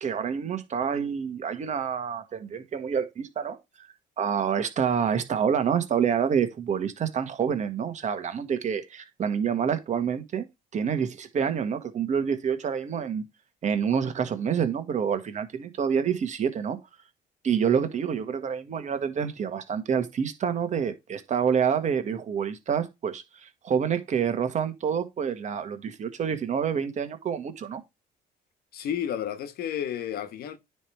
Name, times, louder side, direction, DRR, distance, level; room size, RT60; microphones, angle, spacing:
voice 1, 0.0-3.9 4.2-10.4 10.7-13.2 13.6-16.8 17.4-27.8, right 7 dB, 45° right, 1.5 m, -27 dB
voice 2, 28.7-30.6, left 9 dB, 65° left, 1.2 m, -31 dB
9.8 x 3.5 x 4.6 m
cardioid pair, 110°, 17 cm